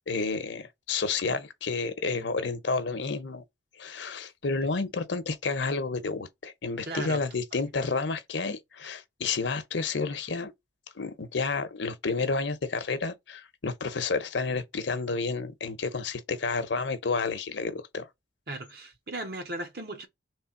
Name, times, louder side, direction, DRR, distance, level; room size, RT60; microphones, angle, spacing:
voice 1, 0.1-3.4 3.8-10.5 11.0-18.1, left 4 dB, 65° left, 0.8 m, -30 dB
voice 2, 6.8-7.2 18.5-20.1, right 2 dB, 50° right, 0.9 m, -37 dB
3.4 x 3.3 x 4.5 m
head